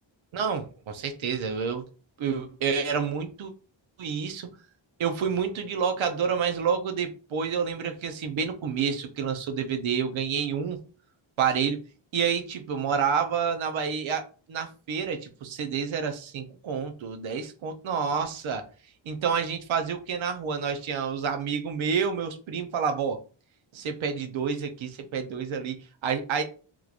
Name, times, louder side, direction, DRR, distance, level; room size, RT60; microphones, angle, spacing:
voice 1, 0.3-1.8 2.2-3.5 4.0-4.5 5.0-10.8 11.4-11.8 12.1-18.6 19.1-23.2 23.7-25.8 26.0-26.4, right 6 dB, 75° right, 6 dB, 0.8 m, -29 dB
3.6 x 3.1 x 2.4 m, 0.37 s
cardioid pair, 105°, 47 cm